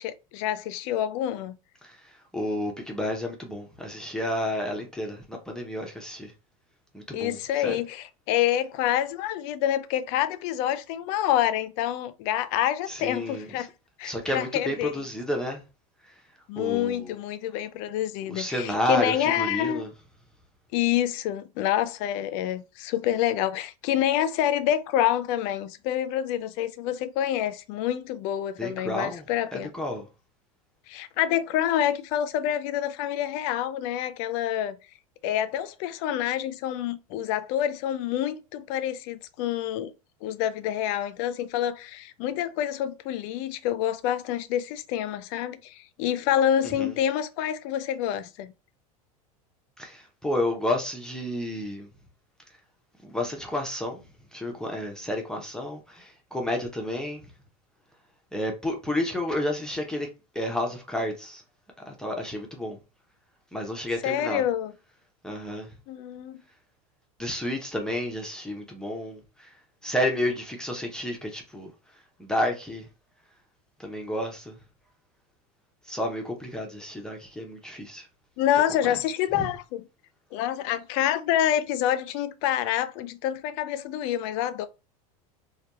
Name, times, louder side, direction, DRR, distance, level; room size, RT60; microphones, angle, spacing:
voice 1, 0.0-1.6 7.1-13.7 14.0-15.0 16.5-19.8 20.7-29.7 30.9-34.8 35.2-39.9 40.2-48.5 64.0-64.7 65.9-66.4 78.4-79.8 80.3-84.7, left 11 dB, 60° left, 0.4 m, -27 dB
voice 2, 2.3-6.3 6.9-7.4 7.6-7.8 12.9-13.5 14.0-15.6 16.6-17.1 18.3-19.9 28.6-29.2 29.5-30.1 46.8-46.9 49.8-51.9 53.0-54.0 54.3-57.2 58.3-60.1 60.3-61.4 61.9-62.8 63.5-64.4 65.2-65.7 67.2-69.5 69.8-71.7 72.2-72.9 73.8-74.6 75.9-78.1 78.8-79.0 79.3-79.5, left 1 dB, 5° left, 0.6 m, -31 dB
2.6 x 2.2 x 2.2 m
hypercardioid pair, 100°, 19 cm